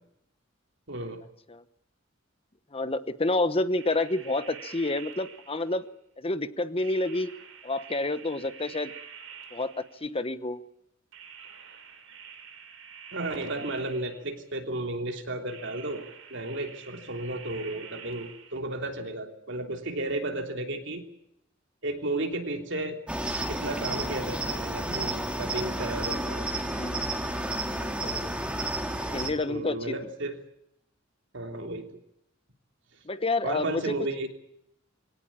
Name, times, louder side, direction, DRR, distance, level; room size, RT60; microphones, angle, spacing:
voice 1, 0.9-1.2 13.1-16.0 16.3-21.0 21.8-23.0 23.5-26.5 29.5-30.4 31.3-31.9 33.4-34.3, right 2 dB, 65° right, 4 dB, 3.2 m, -33 dB
voice 2, 2.7-5.8 6.2-7.3 7.6-8.9 9.5-10.6 26.6-27.2 27.6-28.6 29.0-29.8 33.1-33.9, left 2 dB, 30° left, 12 dB, 1.0 m, -29 dB
sound 1, 3.8-5.9 6.8-10.2 11.1-14.5 15.5-18.6, right 7 dB, 85° right, 3.5 m, -47 dB
Cricket, 23.1-29.3, right 1 dB, 5° right, 2.9 m, -31 dB
23.5 x 17.5 x 8.8 m, 0.80 s
head